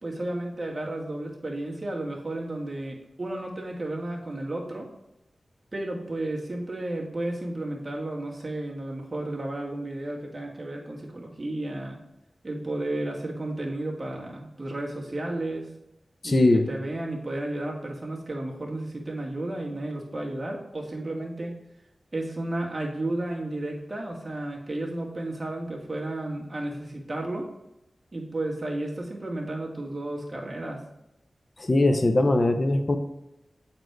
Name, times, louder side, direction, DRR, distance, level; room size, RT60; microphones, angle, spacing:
voice 1, 0.0-4.9 5.7-12.0 12.4-15.7 16.2-21.5 22.1-27.5 28.1-30.8, right 1 dB, 40° right, -1 dB, 1.7 m, -33 dB
voice 2, 16.2-16.7 31.6-33.0, left 2 dB, 45° left, 7 dB, 0.7 m, -21 dB
8.0 x 4.3 x 4.6 m, 0.89 s
cardioid pair, 55°, 0 cm